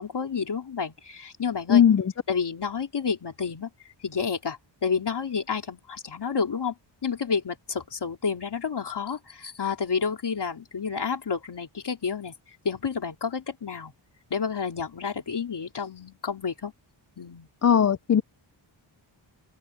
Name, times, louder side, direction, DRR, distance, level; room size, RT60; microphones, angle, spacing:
voice 1, 0.0-1.8 2.3-3.7 4.0-6.7 7.0-12.3 12.7-13.9 14.3-16.7 17.2-17.5, left 6 dB, 55° left, 3.5 m, -30 dB
voice 2, 1.7-2.1 17.6-18.2, left 8 dB, 35° left, 0.4 m, -18 dB
wide cardioid pair, 140°, 48 cm